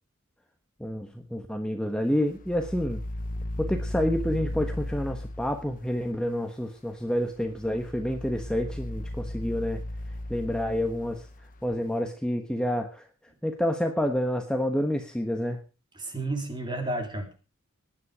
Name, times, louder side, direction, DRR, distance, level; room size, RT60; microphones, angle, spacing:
voice 1, 0.8-3.0 3.6-9.8 10.3-11.3 11.6-13.1 13.4-15.6, equal, 5° left, 4 dB, 1.3 m, -28 dB
sound 1, 2.3-6.0 7.4-11.7, left 1 dB, 40° left, 1.0 m, -36 dB
voice 2, 16.0-17.3, right 2 dB, 20° right, 4 dB, 3.6 m, -31 dB
18.0 x 10.0 x 5.1 m, 0.34 s
head